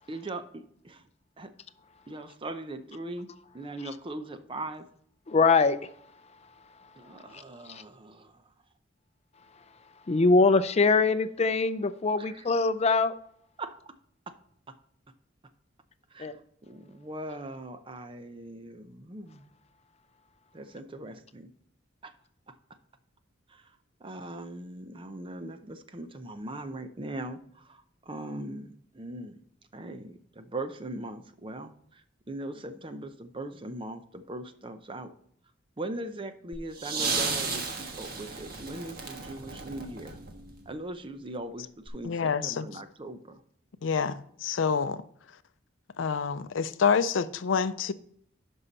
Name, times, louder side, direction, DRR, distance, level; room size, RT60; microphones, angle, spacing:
voice 1, 0.1-1.0 1.4-1.5 2.1-3.3 3.5-4.9 7.0-8.5 12.2-12.4 13.6-14.0 14.3-14.4 14.7-14.8 16.1-19.5 20.5-21.5 22.0-22.1 22.5-22.6 23.5-23.7 24.0-29.4 29.7-35.1 35.8-40.2 40.7-43.4, right 2 dB, 30° right, 0.6 m, -40 dB
voice 2, 5.3-5.9 6.4-6.5 6.8-7.8 10.0-13.1 16.2-16.3, left 4 dB, 35° left, 0.5 m, -24 dB
sound 1, 36.5-40.7 41.9-42.0, right 4 dB, 55° right, 1.4 m, -34 dB
voice 3, 42.0-42.7 43.8-45.0 46.0-47.9, left 6 dB, 90° left, 0.5 m, -27 dB
11.0 x 5.6 x 4.0 m
head